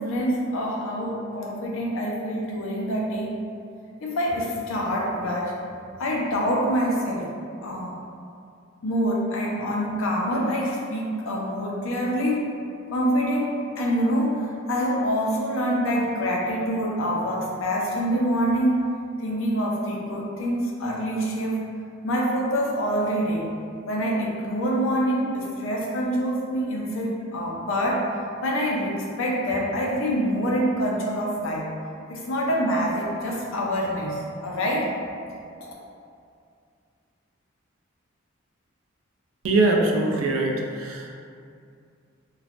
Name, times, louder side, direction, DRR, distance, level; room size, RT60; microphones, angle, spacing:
voice 1, 0.0-3.4 4.0-5.5 6.0-7.3 7.6-7.9 8.8-12.4 12.9-18.8 19.2-21.6 22.0-23.5 23.9-28.0 28.4-31.7 32.1-34.9 35.5-35.6, equal, 75° left, -3 dB, 0.5 m, -26 dB
voice 2, 39.4-41.1, right 2 dB, 80° right, 1 dB, 0.4 m, -22 dB
3.1 x 2.1 x 2.4 m, 2.4 s
head